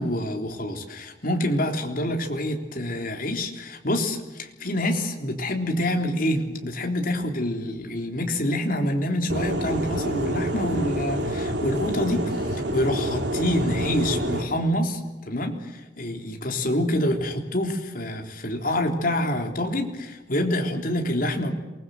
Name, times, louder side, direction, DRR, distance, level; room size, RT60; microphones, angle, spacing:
voice 1, 0.0-21.5, left 1 dB, 50° left, 3 dB, 3.6 m, -26 dB
sound 1, 9.3-14.4, right 1 dB, 65° right, 3.4 m, -28 dB
27.5 x 20.5 x 7.8 m, 1.1 s
head